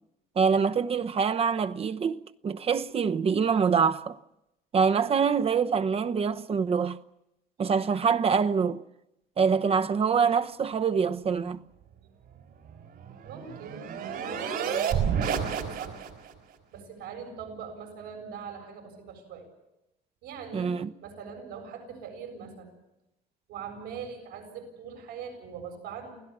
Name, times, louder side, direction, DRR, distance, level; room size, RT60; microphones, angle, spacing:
voice 1, 0.4-4.2 4.7-7.0 7.6-8.8 9.4-11.6 20.5-20.9, right 6 dB, 35° right, 0.9 m, -25 dB
sound 1, 12.7-16.3, right 7 dB, 70° right, 4.1 m, -30 dB
voice 2, 13.2-16.1 16.7-19.5 20.2-20.7 21.0-22.7 23.5-26.2, right 6 dB, 85° right, 7.6 m, -42 dB
28.5 x 16.5 x 7.3 m
cardioid pair, 110°, 17 cm